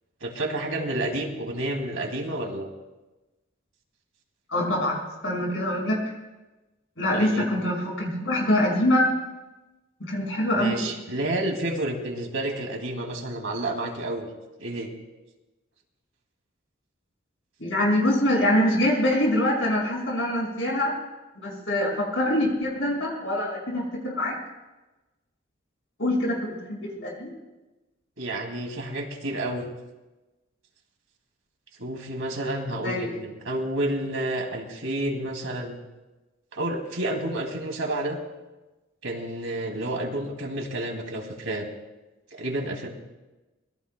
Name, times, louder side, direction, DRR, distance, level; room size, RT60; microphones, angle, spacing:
voice 1, 0.2-2.7 7.1-7.5 10.5-14.3 14.6-14.9 28.2-29.7 31.8-35.8 36.5-38.2 39.0-41.7 42.3-42.9, right 1 dB, 90° right, 2 dB, 2.6 m, -30 dB
voice 2, 4.5-6.0 7.0-9.1 10.1-10.8 17.6-20.9 21.4-24.4 26.0-27.3 32.8-33.1, left 1 dB, 70° left, -1 dB, 6.0 m, -24 dB
25.5 x 21.5 x 2.3 m, 1.1 s
head